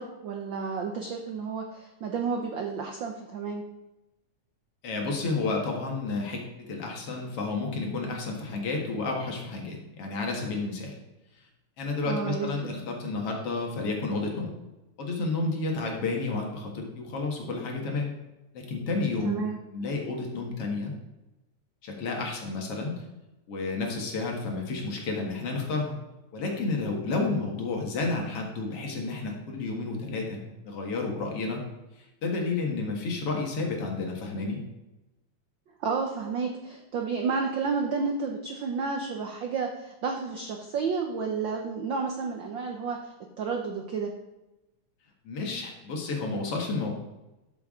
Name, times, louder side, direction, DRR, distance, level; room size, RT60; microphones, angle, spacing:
voice 1, 0.0-3.6 12.0-12.8 19.2-19.6 35.8-43.1 43.4-44.1, right 5 dB, 80° right, 3 dB, 1.0 m, -31 dB
voice 2, 4.8-10.9 11.8-14.5 15.0-18.1 18.5-19.4 19.7-20.9 21.8-23.0 23.5-26.0 26.3-31.6 32.0-34.6 45.2-46.9, left 3 dB, 55° left, 0 dB, 2.4 m, -31 dB
13.0 x 7.0 x 3.7 m, 1.0 s
omnidirectional pair, 3.3 m